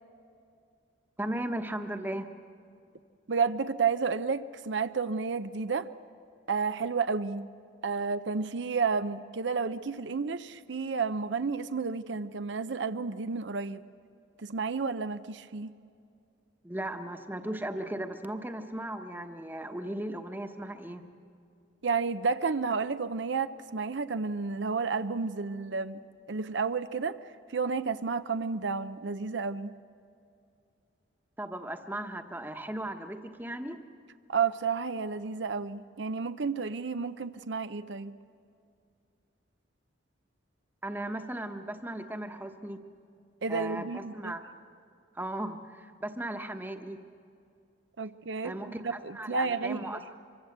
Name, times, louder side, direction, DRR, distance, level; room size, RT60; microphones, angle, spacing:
voice 1, 1.2-2.3 16.6-21.0 31.4-33.8 40.8-42.8 43.5-44.4 45.1-47.0 48.4-50.1, right 1 dB, 10° right, 7 dB, 1.1 m, -37 dB
voice 2, 3.3-5.9 6.5-7.5 7.8-13.8 14.4-15.7 21.8-26.0 26.3-27.2 27.5-29.7 34.3-38.1 43.4-44.4 48.0-48.6 48.8-50.0, right 5 dB, 70° right, 12 dB, 0.7 m, -31 dB
25.5 x 24.0 x 8.0 m, 2.4 s
head